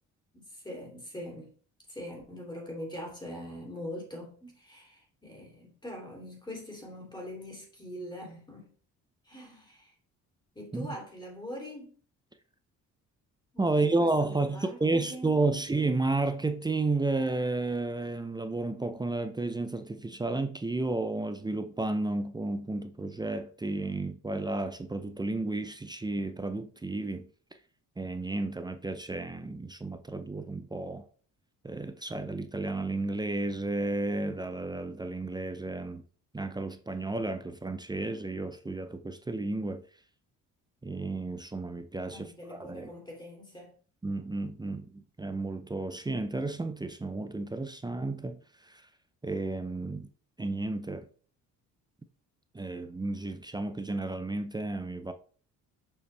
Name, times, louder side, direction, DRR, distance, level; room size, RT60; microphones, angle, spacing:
voice 1, 0.3-1.5 1.9-8.7 9.2-9.9 10.5-11.9 13.5-15.4 42.1-43.7, left 1 dB, 15° left, 3.0 m, -43 dB
voice 2, 13.6-27.3 28.0-31.0 31.6-36.0 36.3-39.8 40.8-42.9 44.0-48.8 49.2-50.1 50.4-51.1 52.5-55.1, right 2 dB, 15° right, 0.6 m, -32 dB
6.8 x 5.5 x 3.3 m
cardioid pair, 105°, 31 cm